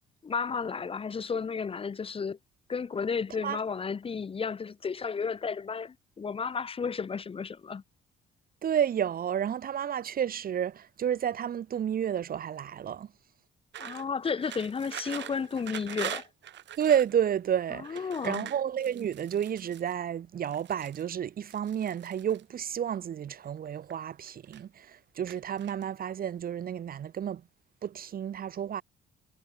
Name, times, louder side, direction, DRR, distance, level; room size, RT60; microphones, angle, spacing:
voice 1, 0.2-2.4 2.7-7.8 13.8-16.3 17.7-18.5, left 5 dB, 30° left, 1.4 m, -33 dB
voice 2, 8.6-13.1 16.8-27.4 27.8-28.8, right 9 dB, 50° right, 2.5 m, -31 dB
sound 1, 13.7-17.2 17.8-19.9 20.4-21.1 21.5-22.4 23.3-24.0 24.3-24.9 25.3-26.0, right 12 dB, 70° right, 4.0 m, -42 dB
cardioid pair, 145°, 19 cm